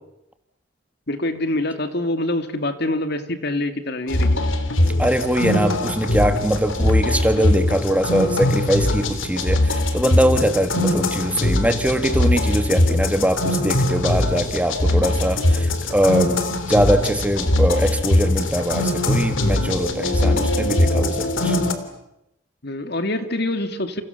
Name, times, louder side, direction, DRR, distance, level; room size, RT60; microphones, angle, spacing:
voice 1, 1.1-4.5 20.2-20.5 22.6-24.0, left 1 dB, 55° left, 9 dB, 2.3 m, -25 dB
sound 1, 4.1-21.7, left 1 dB, 85° left, 3.3 m, -21 dB
voice 2, 5.0-16.4 16.7-21.6, equal, 5° right, 8 dB, 1.9 m, -22 dB
29.5 x 29.0 x 7.0 m, 0.85 s
head